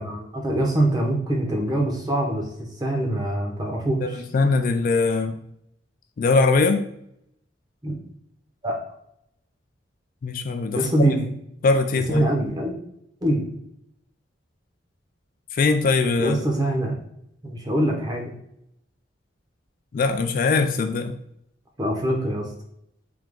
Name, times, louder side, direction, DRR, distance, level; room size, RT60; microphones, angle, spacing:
voice 1, 0.0-2.4 2.8-4.5 7.8-8.0 8.6-8.8 10.8-11.2 12.1-12.8 13.2-13.4 16.2-17.0 17.4-18.3 21.8-22.5, right 1 dB, 20° right, 0 dB, 0.8 m, -24 dB
voice 2, 4.0-5.4 6.2-6.9 10.2-11.2 11.6-12.3 15.5-16.4 19.9-21.2, left 3 dB, 50° left, 7 dB, 0.3 m, -21 dB
3.5 x 2.9 x 3.6 m, 0.74 s
head